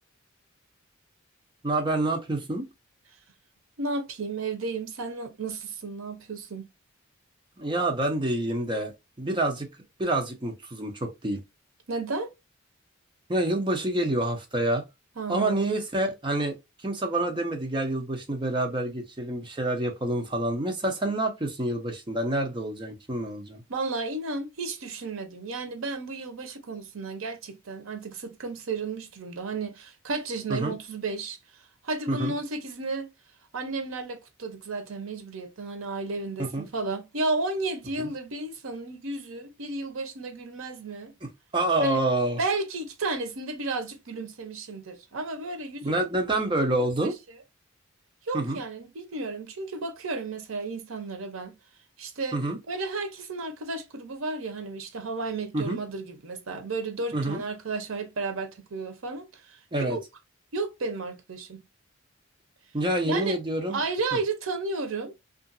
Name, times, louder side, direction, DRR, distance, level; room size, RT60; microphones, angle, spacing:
voice 1, 1.6-2.7 7.6-8.9 9.2-9.7 10.0-11.4 13.3-14.9 15.3-23.6 30.5-30.7 32.1-32.3 36.4-36.7 38.0-38.1 41.2-42.4 45.8-47.1 48.3-48.6 52.3-52.6 55.5-55.8 57.1-57.4 59.7-60.0 62.7-63.8, right 1 dB, 25° right, 0.6 m, -27 dB
voice 2, 3.8-6.7 11.9-12.3 15.2-15.7 23.7-33.1 33.5-41.1 41.8-42.0 42.4-46.1 47.0-47.1 48.2-51.5 52.0-52.4 52.7-60.0 60.5-61.6 63.0-63.4 63.7-65.3, right 3 dB, 75° right, 0.7 m, -33 dB
2.8 x 2.5 x 2.5 m
head